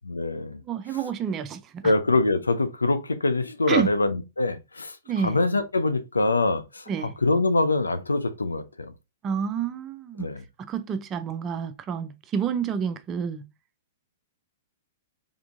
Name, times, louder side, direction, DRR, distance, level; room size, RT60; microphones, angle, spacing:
voice 1, 0.0-0.6 1.8-8.9 10.2-10.4, left 2 dB, 80° left, 0.5 m, -24 dB
voice 2, 0.7-1.9 3.7-3.9 5.1-5.4 6.9-7.1 9.2-10.3 10.7-13.4, right 7 dB, 25° right, 0.4 m, -29 dB
3.6 x 3.5 x 2.5 m
figure-of-eight pair, 110°, 0 cm